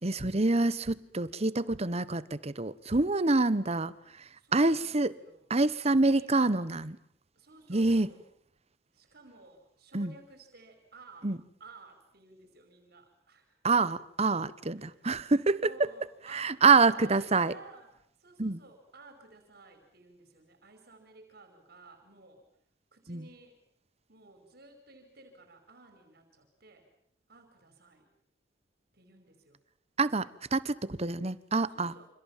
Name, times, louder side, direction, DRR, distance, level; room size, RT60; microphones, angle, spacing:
voice 1, 0.0-3.9 4.5-5.1 5.5-6.9 7.7-8.1 9.9-10.1 11.2-11.4 13.6-15.7 16.3-17.5 18.4-18.6 23.1-23.2 30.0-31.9, right 3 dB, 35° right, 1.1 m, -26 dB
voice 2, 4.4-5.5 5.9-6.7 7.3-8.2 8.9-11.3 11.6-13.6 14.8-15.1 15.6-17.9 18.2-22.5 22.9-23.6 24.1-26.9 27.3-28.1 28.9-29.6 31.7-32.1, right 3 dB, 60° right, 5.3 m, -55 dB
29.0 x 26.5 x 7.4 m
head